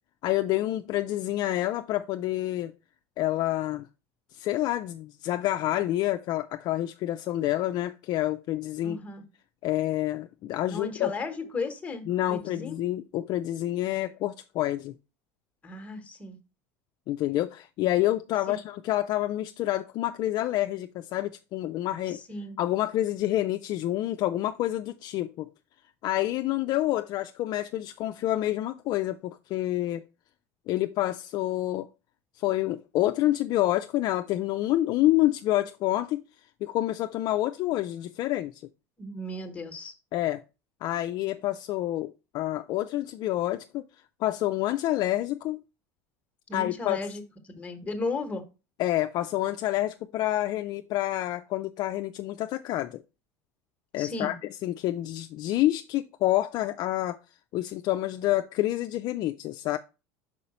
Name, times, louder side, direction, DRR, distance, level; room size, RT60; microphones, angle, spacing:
voice 1, 0.2-2.7 3.2-3.9 4.3-9.0 9.6-11.1 12.1-15.0 17.1-22.2 22.6-25.5 26.0-30.0 30.7-31.9 32.4-36.2 36.6-38.6 40.1-40.4 40.8-43.9 44.2-45.6 46.5-47.1 48.8-53.0 53.9-57.2 57.5-59.8, left 15 dB, 50° left, 0.3 m, -28 dB
voice 2, 8.8-9.2 10.7-12.8 15.6-16.4 18.5-18.6 22.1-22.5 39.0-39.9 46.5-47.2 47.6-48.4 54.0-54.4, left 3 dB, 15° left, 1.1 m, -35 dB
5.4 x 4.8 x 4.2 m
supercardioid pair, 130°, 9 cm